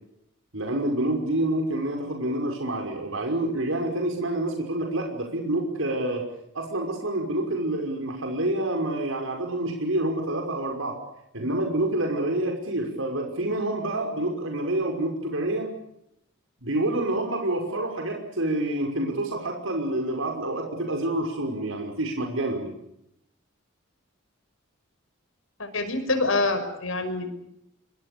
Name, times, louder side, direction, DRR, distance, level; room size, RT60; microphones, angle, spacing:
voice 1, 0.5-6.2 6.5-10.9 11.3-15.7 16.6-22.7, right 1 dB, 80° right, 2 dB, 5.6 m, -27 dB
voice 2, 25.6-27.3, left 2 dB, 80° left, 9 dB, 5.8 m, -26 dB
26.5 x 24.0 x 6.9 m, 0.80 s
head